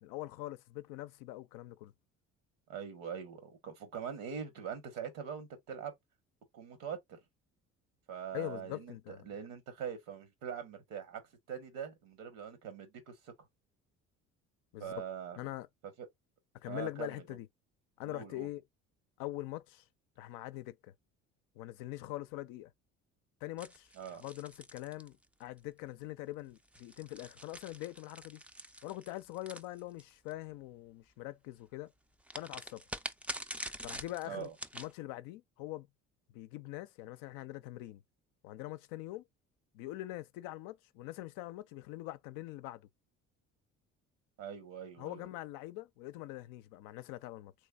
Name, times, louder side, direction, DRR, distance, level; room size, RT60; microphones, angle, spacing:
voice 1, 0.0-1.9 8.3-9.2 14.7-14.9 15.4-15.7 16.5-17.5 18.0-18.6 19.2-19.8 20.2-20.9 21.6-22.7 23.4-28.4 28.8-31.9 32.3-32.8 33.8-35.9 36.3-38.0 38.4-39.2 39.7-42.9 45.0-47.5, left 16 dB, 80° left, 0.5 m, -43 dB
voice 2, 2.7-5.9 6.5-7.2 8.1-11.2 11.5-13.3 14.8-15.4 16.0-16.1 16.7-17.2 18.0-18.5 24.0-24.3 34.2-34.5 44.4-45.3, right 8 dB, 80° right, 1.3 m, -43 dB
sound 1, 23.6-25.6 26.6-30.3 32.3-34.9, right 1 dB, 5° right, 0.3 m, -45 dB
3.3 x 3.2 x 2.3 m
supercardioid pair, 75°, 33 cm